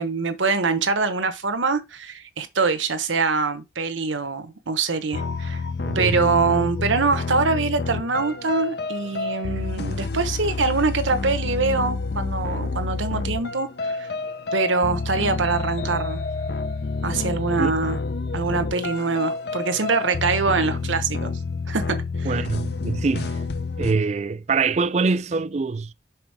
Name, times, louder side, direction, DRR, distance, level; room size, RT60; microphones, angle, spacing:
voice 1, 0.0-5.6 5.9-14.1 14.5-16.2 17.0-18.0 18.3-21.3 21.7-22.4, right 4 dB, 90° right, 1.1 m, -24 dB
sound 1, 5.1-23.9, left 3 dB, 60° left, 0.6 m, -28 dB
voice 2, 5.8-6.2 17.6-17.7 22.3-23.4 23.8-25.9, right 4 dB, 35° right, 0.3 m, -24 dB
5.9 x 4.3 x 4.7 m
head